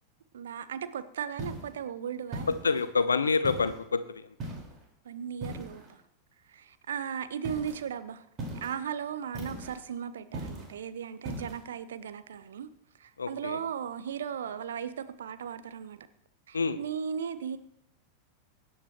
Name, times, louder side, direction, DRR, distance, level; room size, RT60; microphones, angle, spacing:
voice 1, 0.3-2.8 5.0-6.0 6.5-12.7 13.0-16.0 16.5-17.6, right 8 dB, 65° right, 1.0 m, -37 dB
sound 1, 1.4-1.8 2.3-2.9 3.4-3.8 4.4-4.8 5.4-5.9 7.4-7.8 8.4-8.8 9.3-9.8 10.3-10.7 11.2-11.6, right 1 dB, 30° right, 4.7 m, -39 dB
voice 2, 2.6-4.0 13.2-13.6 16.5-16.8, left 4 dB, 75° left, 0.9 m, -27 dB
23.5 x 10.5 x 3.1 m
figure-of-eight pair, 90°, 0 cm